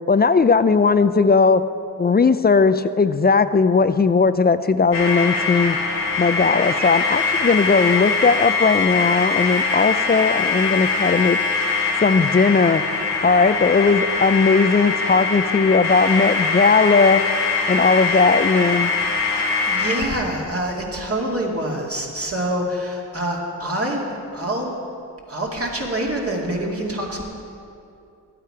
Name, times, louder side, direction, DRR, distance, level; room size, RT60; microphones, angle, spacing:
voice 1, 0.1-1.6 2.0-5.8 6.2-11.4 12.0-12.8 13.2-17.2 17.7-18.9, left 4 dB, 25° left, 13 dB, 0.4 m, -17 dB
sound 1, 4.9-20.1, left 4 dB, 75° left, 1.6 m, -22 dB
voice 2, 19.3-24.0 24.3-24.7 25.3-27.2, right 1 dB, 35° right, -2 dB, 2.3 m, -26 dB
12.0 x 8.7 x 4.9 m, 2.6 s
cardioid pair, 50°, 40 cm